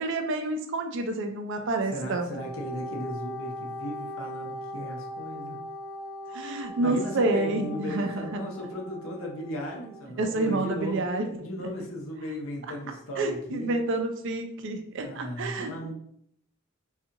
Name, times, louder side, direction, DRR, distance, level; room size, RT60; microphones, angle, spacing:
voice 1, 0.0-2.3 6.3-8.4 10.2-11.3 13.2-15.9, right 2 dB, 60° right, 5 dB, 0.4 m, -29 dB
voice 2, 1.9-5.6 6.8-11.0 11.4-13.7 15.0-15.9, left 1 dB, 75° left, 0 dB, 0.7 m, -36 dB
Wind instrument woodwind instrument, 2.3-10.0, left 1 dB, 25° left, 0.7 m, -40 dB
2.7 x 2.4 x 2.5 m, 0.68 s
head